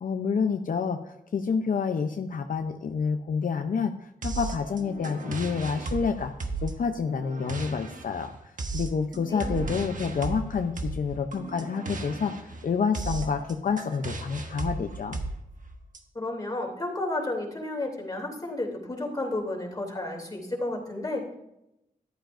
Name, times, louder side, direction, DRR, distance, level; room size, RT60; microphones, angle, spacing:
voice 1, 0.0-6.3 6.6-15.2, left 5 dB, 75° left, 6 dB, 0.6 m, -28 dB
sound 1, 4.2-16.0, right 3 dB, 65° right, 1.3 m, -35 dB
voice 2, 16.1-21.3, left 2 dB, 25° left, 0 dB, 3.0 m, -32 dB
13.5 x 11.5 x 2.6 m, 0.83 s
wide cardioid pair, 90°, 14 cm